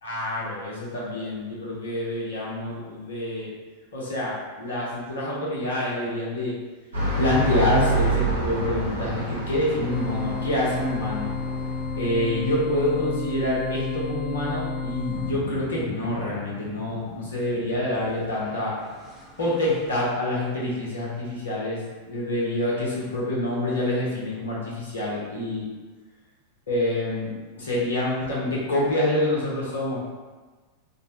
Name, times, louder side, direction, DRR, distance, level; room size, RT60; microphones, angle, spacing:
voice 1, 0.0-3.5 3.9-6.5 7.2-11.3 12.0-18.7 19.4-25.7 26.7-27.3 27.6-30.1, left 1 dB, 65° left, -5 dB, 0.9 m, -27 dB
sound 1, 6.9-12.5, right 2 dB, 75° right, 0.8 m, -28 dB
sound 2, 9.9-15.3, left 4 dB, 25° left, 0.4 m, -31 dB
sound 3, 15.1-20.1, equal, 5° left, 0.8 m, -41 dB
3.1 x 2.2 x 2.9 m, 1.3 s
figure-of-eight pair, 90°, 0 cm